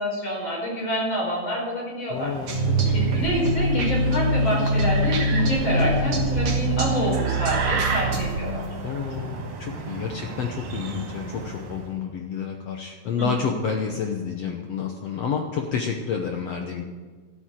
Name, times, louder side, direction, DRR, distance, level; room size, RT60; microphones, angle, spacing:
voice 1, 0.0-2.3 2.9-8.6 13.2-13.3, equal, 35° left, -2 dB, 5.2 m, -27 dB
voice 2, 2.1-2.5 2.9-3.0 8.8-16.8, left 6 dB, 70° left, 3 dB, 1.6 m, -29 dB
sound 1, 2.1-11.9, right 4 dB, 70° right, 3.6 m, -34 dB
sound 2, 2.5-8.9, right 1 dB, 45° right, 2.7 m, -24 dB
13.0 x 9.0 x 7.5 m, 1.5 s
omnidirectional pair, 3.9 m